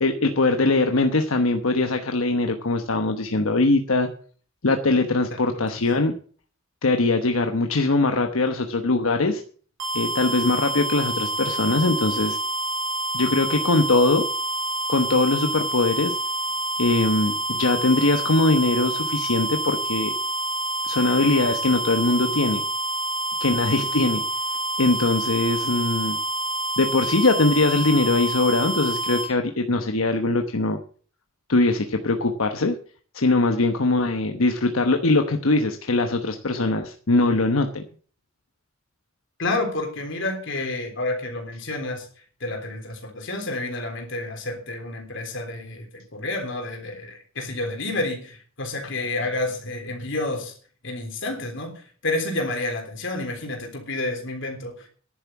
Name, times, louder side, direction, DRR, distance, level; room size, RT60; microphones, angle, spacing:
voice 1, 0.0-4.1 4.6-6.1 6.8-9.4 9.9-12.4 13.1-14.2 14.9-16.2 16.8-20.1 20.9-22.6 23.4-24.2 24.8-26.2 26.8-30.8 31.5-32.8 33.1-37.8, left 2 dB, 85° left, 5 dB, 1.1 m, -21 dB
sound 1, 9.8-29.3, right 2 dB, 60° right, 4.5 m, -28 dB
voice 2, 39.4-42.1 42.4-50.5 50.8-54.9, left 2 dB, 65° left, 4 dB, 3.6 m, -29 dB
11.0 x 8.3 x 7.2 m, 0.43 s
head